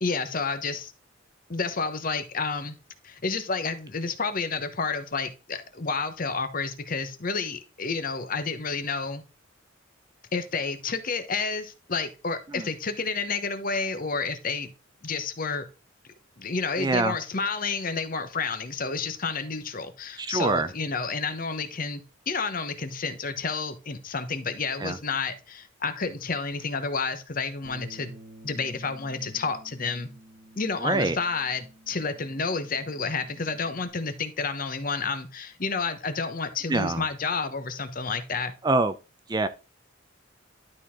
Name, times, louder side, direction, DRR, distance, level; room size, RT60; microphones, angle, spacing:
voice 1, 0.0-0.9 1.5-2.8 3.0-9.2 10.3-14.7 15.0-15.7 16.4-28.1 28.4-30.1 30.6-38.5, left 4 dB, 45° left, 1.0 m, -30 dB
voice 2, 16.8-17.2 20.2-20.7 24.8-25.0 30.8-31.2 36.7-37.0 38.6-38.9 39.3-39.5, right 2 dB, 20° right, 0.4 m, -25 dB
Bass guitar, 27.6-33.9, right 1 dB, 60° right, 1.5 m, -51 dB
12.0 x 4.3 x 3.6 m
head